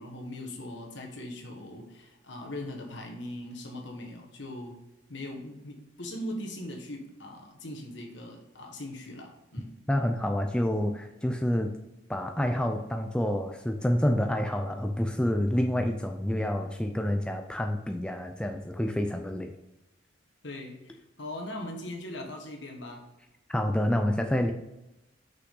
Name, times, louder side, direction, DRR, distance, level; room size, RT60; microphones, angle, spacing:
voice 1, 0.0-4.8 5.1-9.7 20.4-23.0, left 1 dB, 65° left, 2 dB, 1.5 m, -40 dB
voice 2, 9.9-11.7 12.1-19.5 23.5-24.5, left 1 dB, 5° left, 4 dB, 0.4 m, -28 dB
6.1 x 5.7 x 3.8 m, 0.93 s
head